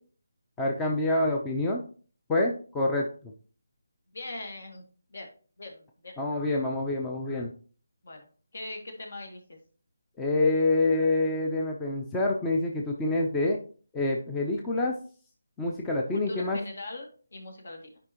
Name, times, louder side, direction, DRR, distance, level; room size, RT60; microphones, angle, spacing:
voice 1, 0.6-1.8 2.3-3.3 6.2-7.5 10.2-13.6 13.9-14.9 15.6-16.6, left 2 dB, 10° left, 0 dB, 0.6 m, -27 dB
voice 2, 4.1-4.8 5.1-5.3 5.6-6.1 8.0-8.3 8.5-9.6 16.1-18.0, left 2 dB, 60° left, 2 dB, 2.3 m, -41 dB
9.8 x 4.9 x 3.0 m, 0.42 s
figure-of-eight pair, 170°, 0 cm